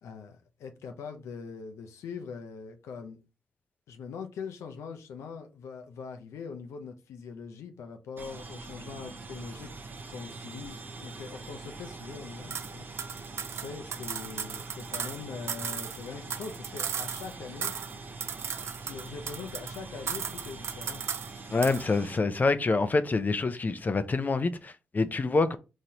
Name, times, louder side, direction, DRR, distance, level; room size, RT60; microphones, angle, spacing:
voice 1, 0.0-3.2 3.9-9.7 10.1-12.9 13.6-17.8 18.8-21.0, left 5 dB, 85° left, 0.6 m, -42 dB
sound 1, 8.2-22.2, right 3 dB, 50° right, 0.8 m, -44 dB
sound 2, 12.5-12.7 13.0-15.2 15.5-17.3 17.6-18.0 18.2-19.8 20.1-21.3 21.6-21.9, right 7 dB, 65° right, 0.4 m, -36 dB
voice 2, 21.5-25.6, left 3 dB, 35° left, 0.5 m, -26 dB
3.8 x 3.1 x 2.8 m
supercardioid pair, 55°, 5 cm